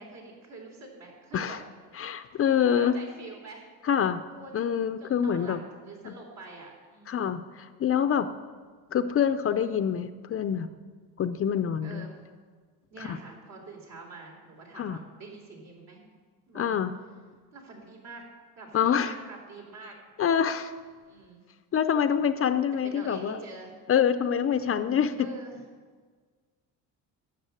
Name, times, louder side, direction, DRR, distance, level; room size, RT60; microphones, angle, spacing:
voice 1, 0.0-1.6 2.7-3.7 4.3-7.2 11.8-12.1 12.9-16.0 16.5-16.6 17.5-18.2 18.6-20.0 21.1-21.4 22.8-23.7 25.2-25.6, right 3 dB, 60° right, 0 dB, 3.9 m, -45 dB
voice 2, 1.9-2.9 3.9-4.2 4.5-5.6 6.0-6.1 7.1-8.3 8.9-10.7 11.2-12.1 13.1-13.2 14.7-15.0 16.6-16.9 18.7-19.1 20.2-20.7 21.7-23.4 23.9-25.1, left 8 dB, 35° left, 10 dB, 0.5 m, -26 dB
12.0 x 7.2 x 8.8 m, 1.5 s
cardioid pair, 135°, 38 cm